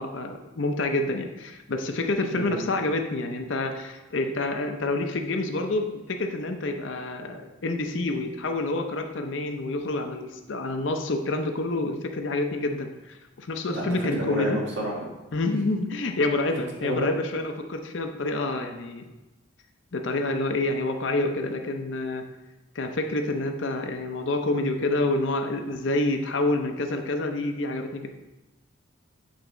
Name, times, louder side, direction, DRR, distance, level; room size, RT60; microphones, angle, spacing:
voice 1, 0.0-14.6 15.3-19.0 19.9-22.3 22.7-28.1, left 2 dB, 65° left, 5 dB, 0.6 m, -28 dB
voice 2, 13.7-15.1 16.8-17.1, equal, 65° right, -3 dB, 1.4 m, -30 dB
8.1 x 3.5 x 3.9 m, 1.1 s
head